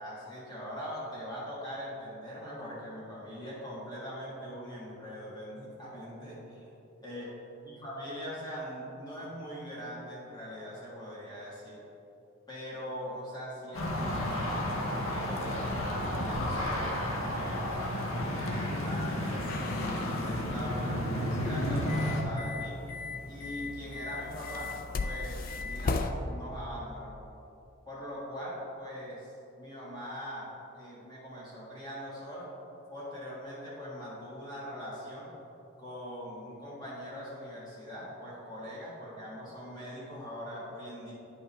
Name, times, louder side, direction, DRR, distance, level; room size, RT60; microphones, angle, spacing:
voice 1, 0.0-6.6 7.0-7.4 7.6-11.8 12.5-15.8 16.2-16.9 17.2-19.8 20.0-22.8 23.3-27.2 27.8-32.5 32.9-35.3 35.8-41.1, equal, 20° left, -7 dB, 1.5 m, -42 dB
sound 1, 13.7-22.2, left 1 dB, 75° left, 1.0 m, -32 dB
sound 2, 19.4-26.1, left 3 dB, 40° left, 0.3 m, -38 dB
9.7 x 5.5 x 3.3 m, 2.8 s
head